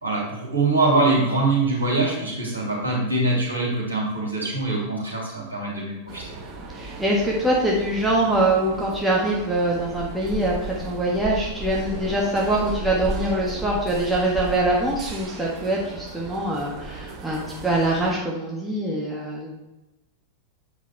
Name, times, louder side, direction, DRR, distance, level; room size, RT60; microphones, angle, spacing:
voice 1, 0.0-6.4, right 2 dB, 75° right, -4 dB, 2.5 m, -23 dB
sound 1, 6.1-18.1, right 3 dB, 35° right, 1.5 m, -35 dB
voice 2, 6.8-19.6, right 1 dB, 5° right, -5 dB, 1.5 m, -24 dB
8.1 x 4.9 x 4.6 m, 0.99 s
figure-of-eight pair, 90°, 0 cm